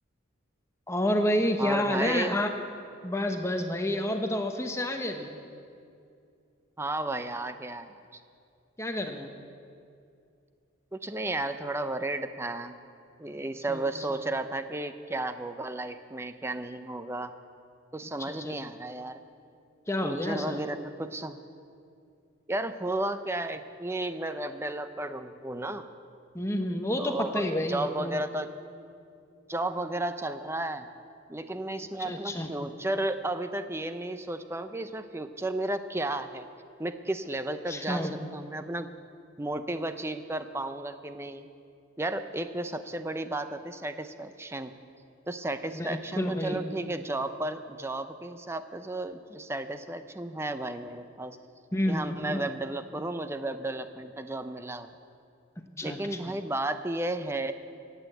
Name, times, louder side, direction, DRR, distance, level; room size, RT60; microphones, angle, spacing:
voice 1, 0.9-2.5 3.0-5.3 8.8-9.3 13.3-13.4 13.7-13.8 14.1-14.2 18.2-18.5 19.9-20.6 26.3-28.2 32.0-32.5 37.7-38.1 45.7-46.6 51.7-52.4 55.6-56.0 56.3-56.4, left 1 dB, 15° left, 5 dB, 0.9 m, -29 dB
voice 2, 1.6-2.4 6.8-7.9 10.9-12.7 13.2-17.3 17.9-19.2 20.0-21.4 22.5-25.9 26.9-28.5 29.5-30.9 31.3-36.5 36.8-38.9 39.4-41.5 42.0-44.8 45.3-51.4 51.9-54.9 55.8-57.5, right 2 dB, 15° right, 10 dB, 0.5 m, -33 dB
16.0 x 9.2 x 7.9 m, 2.4 s
head